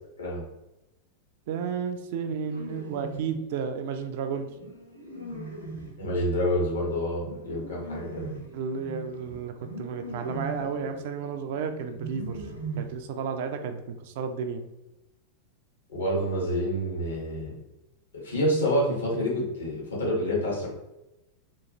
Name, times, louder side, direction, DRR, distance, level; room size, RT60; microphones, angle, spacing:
voice 1, 1.5-4.5 8.5-12.4 12.8-14.6, right 6 dB, 50° right, 7 dB, 0.3 m, -32 dB
sound 1, 2.4-3.4 4.1-13.3, right 2 dB, 90° right, 0.7 m, -40 dB
voice 2, 6.0-8.3 15.9-17.5 18.2-20.7, equal, 70° left, -4 dB, 1.1 m, -27 dB
2.9 x 2.4 x 2.7 m, 0.95 s
figure-of-eight pair, 90°, 0 cm